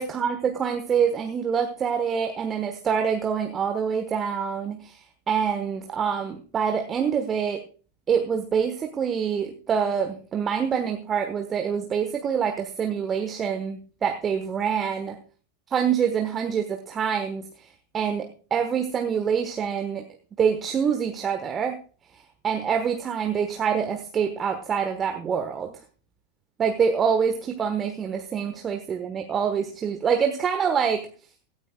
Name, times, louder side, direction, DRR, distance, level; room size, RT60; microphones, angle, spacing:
voice 1, 0.0-5.0 5.3-7.6 8.1-15.2 15.7-17.7 17.9-20.0 20.4-21.8 22.4-25.7 26.6-31.1, right 7 dB, 25° right, 6 dB, 1.3 m, -26 dB
17.0 x 13.5 x 2.3 m, 0.38 s
figure-of-eight pair, 90°, 0 cm